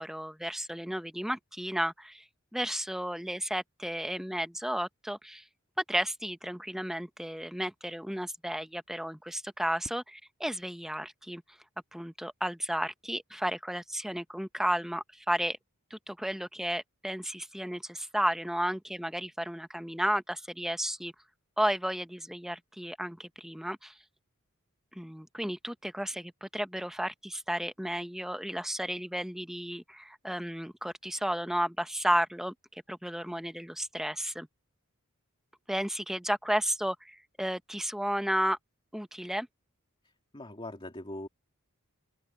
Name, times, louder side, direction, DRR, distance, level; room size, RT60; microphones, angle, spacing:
voice 1, 0.0-2.2 2.5-5.4 5.8-10.0 10.4-11.4 11.9-15.6 15.9-21.1 21.6-23.9 24.9-34.5 35.7-38.6 38.9-39.5, equal, ahead, 1.0 m, -33 dB
voice 2, 40.0-41.3, left 1 dB, 25° left, 2.5 m, -42 dB
open air
head